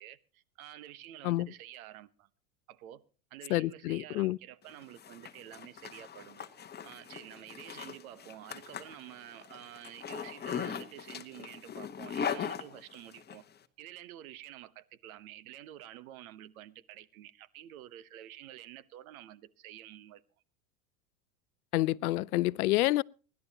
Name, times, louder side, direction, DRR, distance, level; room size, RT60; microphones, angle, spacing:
voice 1, 0.0-2.3 2.7-3.0 3.3-6.5 6.8-13.4 13.8-20.2, right 13 dB, 70° right, 1.1 m, -49 dB
voice 2, 3.5-4.4 21.7-23.0, left 17 dB, 85° left, 0.6 m, -28 dB
Zipper (clothing), 4.7-13.4, left 7 dB, 20° left, 1.2 m, -40 dB
24.5 x 11.5 x 2.9 m
hypercardioid pair, 105°, 43 cm